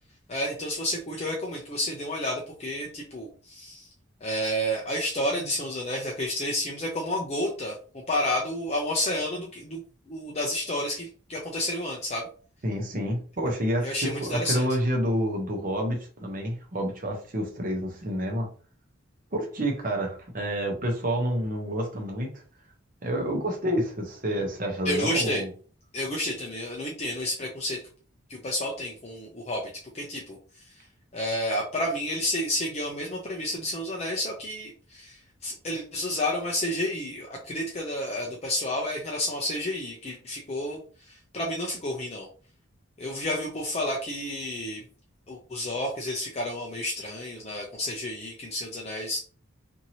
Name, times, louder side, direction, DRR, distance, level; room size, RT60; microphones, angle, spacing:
voice 1, 0.3-3.9 4.2-9.8 10.1-12.3 13.8-14.6 24.8-25.4 25.9-27.8 28.3-29.7 29.9-30.4 30.7-30.8 31.1-42.3 43.0-44.8 45.3-49.2, left 1 dB, 30° left, -2 dB, 0.5 m, -30 dB
voice 2, 12.6-18.5 19.3-22.4 23.0-25.5, equal, 40° right, 2 dB, 0.8 m, -28 dB
2.8 x 2.7 x 2.8 m, 0.41 s
head